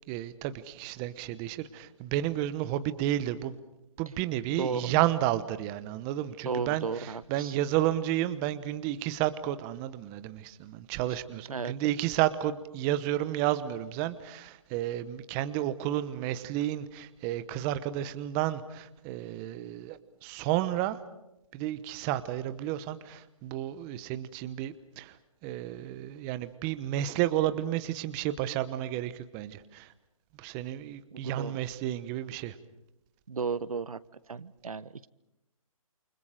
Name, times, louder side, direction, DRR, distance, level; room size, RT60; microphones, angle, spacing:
voice 1, 0.1-3.6 4.0-21.0 21.5-25.2 25.4-29.9 30.4-32.6, right 13 dB, 15° right, 13 dB, 1.0 m, -31 dB
voice 2, 4.6-4.9 6.4-7.5 11.1-11.2 11.5-11.7 31.1-31.6 33.3-34.0 34.3-35.1, right 5 dB, 75° right, 17 dB, 1.3 m, -34 dB
29.0 x 29.0 x 5.0 m, 0.89 s
hypercardioid pair, 155°, 18 cm